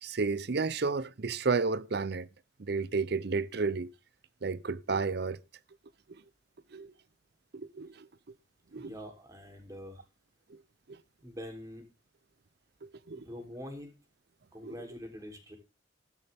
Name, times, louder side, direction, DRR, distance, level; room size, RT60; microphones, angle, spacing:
voice 1, 0.0-2.3 2.6-3.9 4.4-5.4 6.7-6.9 7.5-8.1 8.7-8.9 10.5-10.6 10.9-11.0 12.8-13.2 14.6-14.7, right 4 dB, 65° right, 0.7 m, -32 dB
voice 2, 8.8-10.0 11.2-11.8 13.1-13.9 14.5-15.6, equal, 20° right, 3.5 m, -44 dB
14.5 x 12.5 x 3.5 m
head